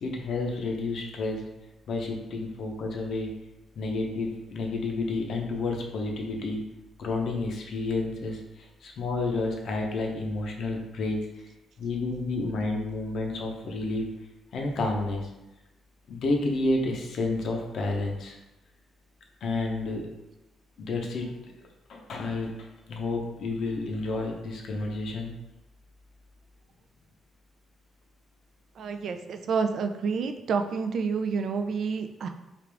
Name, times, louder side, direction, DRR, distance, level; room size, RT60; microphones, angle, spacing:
voice 1, 0.0-1.4 1.9-3.3 3.8-6.6 7.0-11.2 11.8-14.1 14.5-15.3 16.1-18.4 19.4-20.0 20.8-21.3 21.9-25.3, left 2 dB, 65° left, 1 dB, 0.7 m, -30 dB
voice 2, 28.8-32.3, right 5 dB, 60° right, 6 dB, 0.3 m, -29 dB
3.4 x 2.4 x 3.3 m, 0.97 s
cardioid pair, 90°, 0 cm